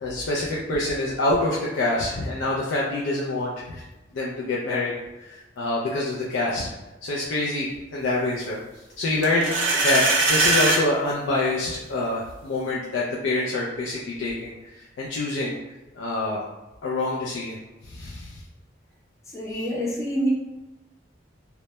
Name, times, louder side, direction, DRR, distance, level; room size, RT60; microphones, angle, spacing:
voice 1, 0.0-3.8 4.1-4.9 5.2-6.7 7.0-8.6 9.0-15.6 16.0-16.4 16.8-17.6 17.8-18.4, left 2 dB, 85° left, -5 dB, 0.4 m, -26 dB
sound 1, 9.2-10.8, right 2 dB, 70° right, 0.5 m, -21 dB
voice 2, 19.3-20.3, equal, 15° left, -3 dB, 0.4 m, -26 dB
2.1 x 2.1 x 2.8 m, 1.1 s
head